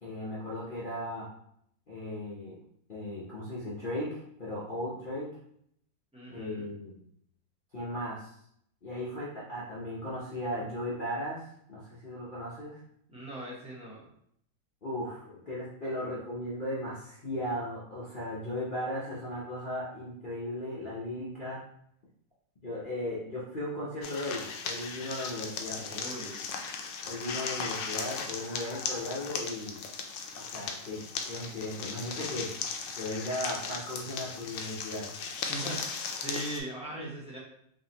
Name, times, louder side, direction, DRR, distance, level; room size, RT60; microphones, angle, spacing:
voice 1, 0.0-1.3 1.9-2.6 2.9-5.3 6.3-7.0 7.7-8.3 8.8-12.8 14.8-21.6 22.6-25.9 27.0-29.8 30.3-32.5 32.9-35.1, left 1 dB, 55° left, -7 dB, 0.5 m, -36 dB
voice 2, 6.1-6.7 13.1-14.1 25.8-26.6 35.5-37.4, right 1 dB, 10° right, -6 dB, 0.3 m, -40 dB
sound 1, 24.0-36.6, left 5 dB, 75° left, 1.2 m, -37 dB
4.8 x 2.7 x 2.9 m, 0.70 s
omnidirectional pair, 2.0 m